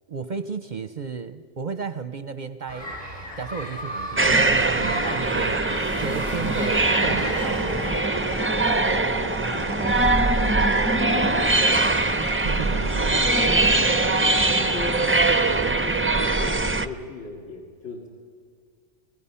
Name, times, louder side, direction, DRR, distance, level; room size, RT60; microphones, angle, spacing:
voice 1, 0.1-2.9 3.4-5.6 6.0-7.9 12.4-13.2, right 5 dB, 50° right, 11 dB, 0.7 m, -33 dB
sound 1, 2.7-8.2, left 1 dB, 55° left, 6.8 m, -34 dB
sound 2, 4.2-16.9, right 2 dB, 15° right, 0.4 m, -22 dB
sound 3, 7.0-15.7, left 3 dB, 25° left, 0.9 m, -38 dB
voice 2, 8.7-11.4 13.4-18.1, left 1 dB, 70° left, -3 dB, 2.5 m, -38 dB
28.0 x 20.5 x 5.6 m, 2.1 s
omnidirectional pair, 1.2 m